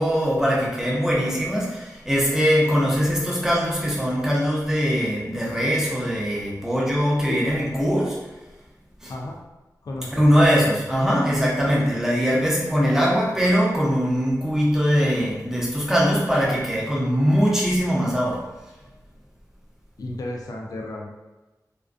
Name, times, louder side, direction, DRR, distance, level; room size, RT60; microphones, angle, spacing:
voice 1, 0.0-8.2 9.0-9.1 10.2-18.4, equal, 5° right, -5 dB, 0.6 m, -21 dB
voice 2, 9.8-10.3 20.0-21.1, left 2 dB, 70° left, -1 dB, 0.3 m, -33 dB
2.4 x 2.1 x 2.4 m, 1.1 s
wide cardioid pair, 85°, 7 cm